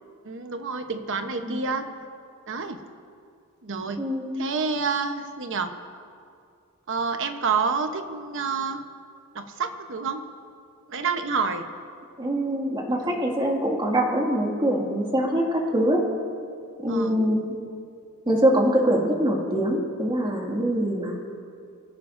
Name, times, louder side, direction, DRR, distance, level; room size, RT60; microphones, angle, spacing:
voice 1, 0.2-1.9 2.5-2.8 3.6-4.0 4.3-5.7 6.9-8.8 9.3-10.2 10.9-11.7 13.0-13.2 16.9-17.1, right 5 dB, 60° right, 7 dB, 1.0 m, -28 dB
voice 2, 4.0-4.4 12.2-16.0 16.8-17.4 18.3-21.2, equal, 20° right, -1 dB, 2.1 m, -23 dB
25.0 x 15.5 x 2.6 m, 2.4 s
head